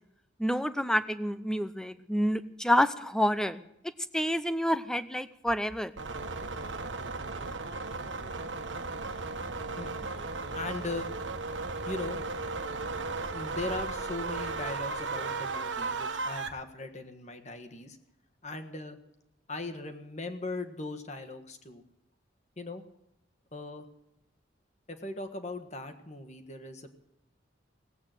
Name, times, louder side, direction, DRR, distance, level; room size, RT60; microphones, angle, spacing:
voice 1, 0.4-3.6 4.1-5.9, equal, 5° left, 13 dB, 0.7 m, -28 dB
sound 1, 6.0-16.5, right 3 dB, 80° right, 1.4 m, -35 dB
voice 2, 10.5-11.1 11.8-12.2 13.3-18.0 18.4-19.0 19.5-21.8 22.6-22.8 23.5-23.9 24.9-26.9, left 2 dB, 35° left, 8 dB, 1.6 m, -39 dB
18.0 x 8.6 x 9.1 m, 0.85 s
head